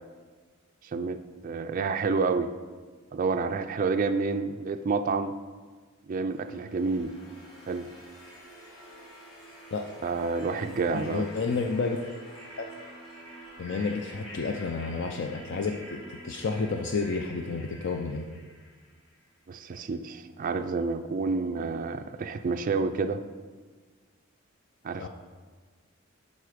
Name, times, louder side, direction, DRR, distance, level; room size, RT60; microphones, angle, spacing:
voice 1, 0.8-2.5 3.1-5.3 6.1-7.1 7.7-7.9 10.0-11.3 19.5-23.2 24.8-25.1, right 4 dB, 40° right, 7 dB, 0.3 m, -29 dB
sound 1, 6.3-19.2, equal, 30° left, 2.6 m, -47 dB
voice 2, 10.9-12.0 12.6-12.7 13.6-18.3 25.0-25.1, left 4 dB, 60° left, 4 dB, 0.5 m, -31 dB
11.5 x 4.2 x 5.0 m, 1.4 s
head